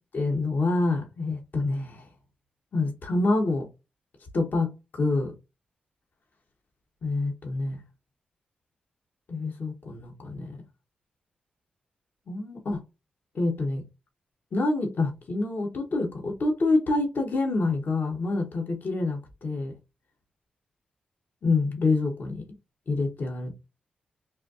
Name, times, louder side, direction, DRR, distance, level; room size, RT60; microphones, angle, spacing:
voice 1, 0.1-2.1 2.7-3.7 4.3-4.7 4.9-5.3 7.0-7.8 9.3-10.6 12.3-12.8 13.3-13.8 14.5-19.7 21.4-22.4 22.9-23.5, left 3 dB, 60° left, 1.3 m, -27 dB
4.1 x 2.6 x 2.7 m
cardioid pair, 55°, 3 cm